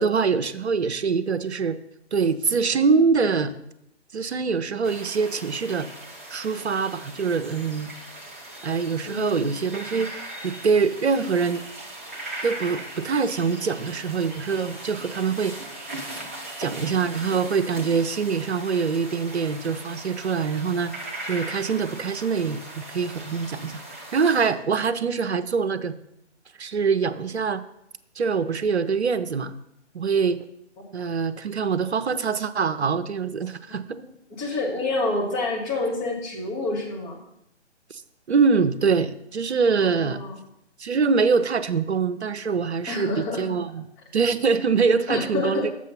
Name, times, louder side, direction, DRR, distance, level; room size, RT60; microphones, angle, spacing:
voice 1, 0.0-1.8 2.1-3.5 4.1-5.9 6.3-7.9 8.6-11.6 12.4-15.5 16.6-20.9 21.2-23.8 24.1-25.9 26.6-27.6 28.2-29.5 29.9-30.4 30.9-34.0 38.3-40.2 40.8-43.8 44.1-45.8, right 5 dB, 65° right, 11 dB, 0.7 m, -24 dB
sound 1, 4.8-24.5, right 1 dB, 10° right, 0.5 m, -39 dB
voice 2, 9.1-9.5 34.4-37.2 39.8-40.4 42.9-43.5 45.1-45.8, left 2 dB, 20° left, -2 dB, 1.8 m, -28 dB
7.3 x 6.2 x 5.8 m, 0.79 s
figure-of-eight pair, 140°, 35 cm